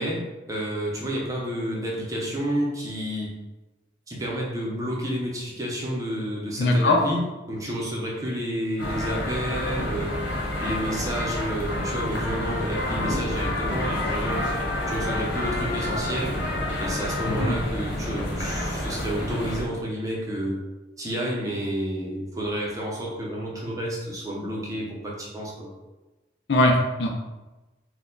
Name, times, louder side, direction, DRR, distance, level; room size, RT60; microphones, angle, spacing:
voice 1, 0.0-3.4 4.1-10.2 10.6-14.5 14.9-16.4 16.8-20.6 21.0-25.7, equal, 20° right, -3 dB, 0.7 m, -30 dB
voice 2, 6.6-7.0 17.3-17.5 26.5-27.1, left 2 dB, 70° left, 1 dB, 0.6 m, -20 dB
sound 1, 8.8-19.6, left 1 dB, 90° left, 1.2 m, -28 dB
4.4 x 2.3 x 3.8 m, 1.1 s
head